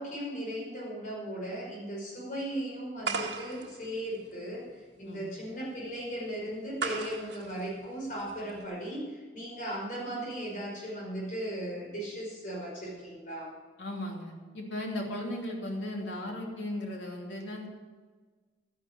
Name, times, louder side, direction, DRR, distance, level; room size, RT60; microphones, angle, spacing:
voice 1, 0.0-4.6 5.0-13.5, right 1 dB, 45° left, -3 dB, 5.3 m, -37 dB
sound 1, 3.0-8.7, right 4 dB, 70° right, 1.5 m, -39 dB
voice 2, 13.8-17.7, left 1 dB, 85° left, 0 dB, 2.9 m, -36 dB
12.5 x 11.0 x 7.5 m, 1.4 s
head